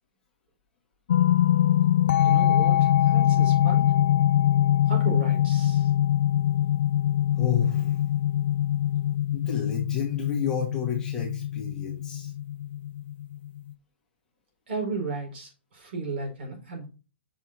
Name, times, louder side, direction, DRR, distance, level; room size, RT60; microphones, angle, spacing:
sound 1, 1.1-13.7, left 12 dB, 65° left, 0.4 m, -23 dB
voice 1, 2.2-3.9 4.9-5.9 14.7-16.9, right 3 dB, 60° right, 1 dB, 4.9 m, -34 dB
voice 2, 7.4-8.1 9.3-12.3, left 7 dB, 10° left, -2 dB, 1.6 m, -31 dB
6.2 x 5.6 x 4.3 m, 0.32 s
hypercardioid pair, 170°, 6 cm